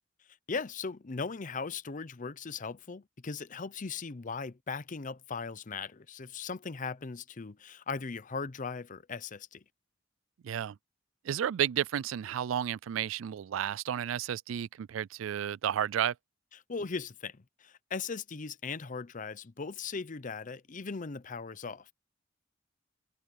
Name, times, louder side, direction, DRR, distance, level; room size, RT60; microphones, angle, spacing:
voice 1, 0.5-9.6 16.7-21.9, left 4 dB, 40° left, 0.7 m, -38 dB
voice 2, 10.4-10.8 11.2-16.1, right 10 dB, 85° right, 0.3 m, -32 dB
head